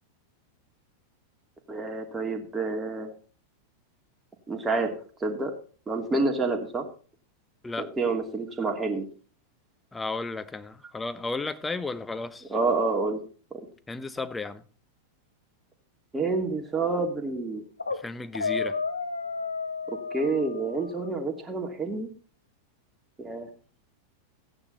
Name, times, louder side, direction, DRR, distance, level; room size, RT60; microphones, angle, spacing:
voice 1, 1.7-3.1 4.5-5.5 5.9-6.9 7.8-9.1 12.5-13.2 13.5-13.6 16.1-17.6 19.9-22.1 23.2-23.5, right 3 dB, 15° right, 2.8 m, -28 dB
voice 2, 9.9-12.5 13.9-14.6 17.9-18.8, left 3 dB, 10° left, 1.0 m, -34 dB
sound 1, 17.5-18.0 18.3-21.1, left 4 dB, 80° left, 1.0 m, -32 dB
15.0 x 9.8 x 4.2 m
figure-of-eight pair, 90°, 0 cm